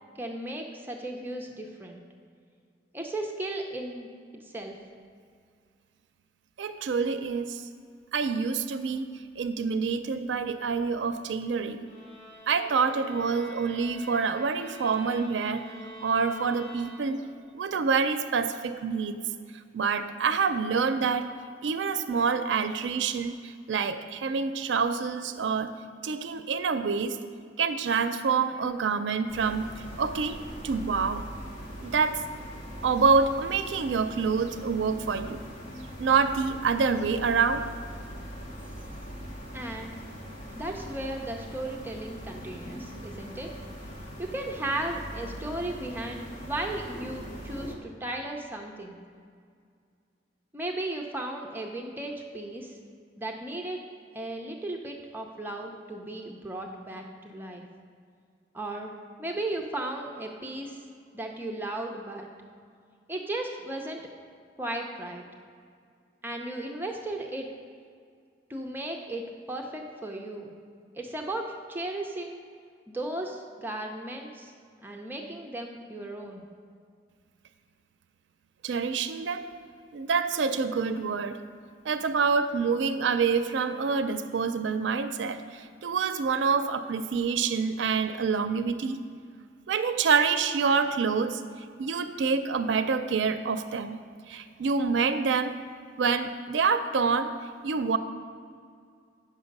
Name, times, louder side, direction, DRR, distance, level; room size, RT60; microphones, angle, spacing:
voice 1, 0.2-2.0 2.9-4.1 4.5-4.8 39.5-40.0 40.5-43.5 44.2-49.0 50.5-52.8 53.2-53.8 54.1-57.6 58.5-58.9 59.2-60.8 61.1-62.3 63.1-64.0 64.6-65.2 66.2-67.5 68.5-70.5 70.9-72.4 72.9-74.5 74.8-76.5, right 1 dB, 10° right, 1 dB, 0.6 m, -35 dB
voice 2, 6.6-7.7 8.1-9.1 9.4-11.9 12.5-15.6 16.0-17.2 17.5-19.2 19.7-21.3 21.6-25.7 26.0-27.2 27.6-29.7 30.0-31.2 31.8-32.2 32.8-35.4 36.0-37.7 78.6-79.5 79.9-81.4 81.8-89.0 89.7-91.4 91.8-94.0 94.3-95.5 96.0-97.3 97.6-98.0, right 5 dB, 85° right, 10 dB, 0.4 m, -27 dB
sound 1, 11.8-17.5, equal, 5° left, 2.4 m, -46 dB
sound 2, 29.3-47.8, equal, 50° left, 1.2 m, -41 dB
8.8 x 6.4 x 5.3 m, 2.2 s
head